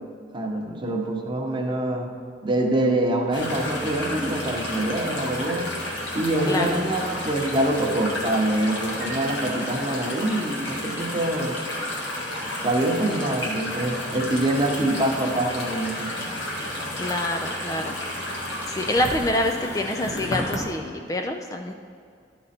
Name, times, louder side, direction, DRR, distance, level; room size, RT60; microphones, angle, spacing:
voice 1, 0.3-2.1 2.4-5.7 6.1-11.6 12.6-16.2, right 1 dB, 25° right, 1 dB, 0.9 m, -25 dB
sound 1, 3.3-20.6, left 1 dB, 75° left, 1.7 m, -31 dB
Piano, 9.0-10.8, right 5 dB, 90° right, 0.9 m, -42 dB
voice 2, 17.0-18.0 18.7-21.7, left 1 dB, 20° left, 4 dB, 0.3 m, -26 dB
12.0 x 5.2 x 4.3 m, 2.4 s
head